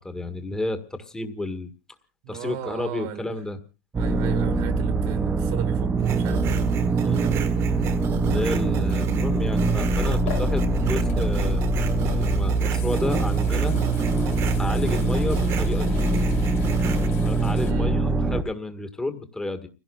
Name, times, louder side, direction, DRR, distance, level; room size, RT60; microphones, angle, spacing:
voice 1, 0.0-1.7 2.3-3.6 7.0-7.2 8.2-11.6 12.0-13.8 14.6-16.0 17.2-19.7, left 2 dB, 10° left, 1.6 m, -31 dB
voice 2, 2.2-3.3 4.0-7.8 10.8-11.1 17.6-17.9, right 9 dB, 50° right, 1.7 m, -37 dB
sound 1, 3.9-18.4, right 3 dB, 15° right, 0.7 m, -23 dB
sound 2, 6.0-17.1, right 5 dB, 35° right, 1.5 m, -34 dB
sound 3, 8.9-17.7, left 14 dB, 65° left, 3.9 m, -44 dB
30.0 x 16.5 x 2.3 m
hypercardioid pair, 130°, 8 cm